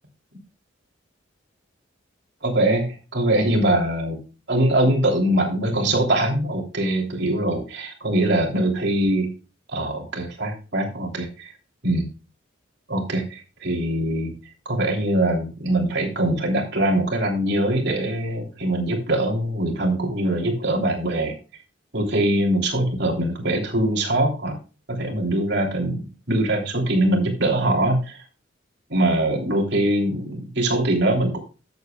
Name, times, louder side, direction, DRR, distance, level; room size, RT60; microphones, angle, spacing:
voice 1, 2.4-4.2 4.5-9.3 9.7-11.5 11.8-12.1 12.9-14.3 14.6-21.3 21.9-24.6 24.9-28.2 28.9-31.4, right 1 dB, 55° right, 2 dB, 3.2 m, -22 dB
13.0 x 8.2 x 2.3 m, 0.33 s
head